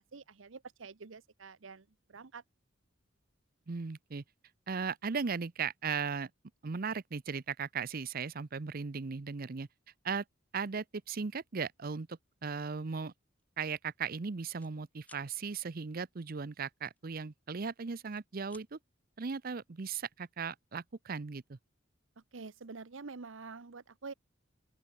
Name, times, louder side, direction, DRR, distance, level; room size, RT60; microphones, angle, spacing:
voice 1, 0.0-2.4 22.2-24.1, right 4 dB, 80° right, 0.9 m, -47 dB
voice 2, 3.7-4.2 4.7-6.3 6.6-9.7 10.0-10.2 10.5-13.1 13.6-18.8 19.2-21.6, right 5 dB, 50° right, 0.6 m, -37 dB
sound 1, 12.7-12.9 13.4-13.6 13.8-14.7 15.0-15.3 16.9-17.6 18.0-18.7, left 2 dB, 10° left, 6.5 m, -60 dB
open air
head